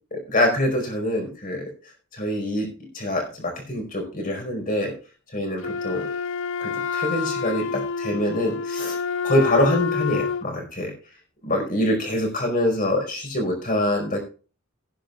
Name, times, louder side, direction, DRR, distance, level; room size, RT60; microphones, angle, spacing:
voice 1, 0.1-1.7 2.1-2.7 2.9-4.9 5.3-6.1 6.6-9.0 9.2-10.9 11.4-14.2, left 1 dB, 40° left, 2 dB, 4.8 m, -25 dB
Wind instrument woodwind instrument, 5.6-10.5, left 5 dB, 60° left, 0.5 m, -28 dB
18.0 x 10.5 x 2.4 m, 0.35 s
head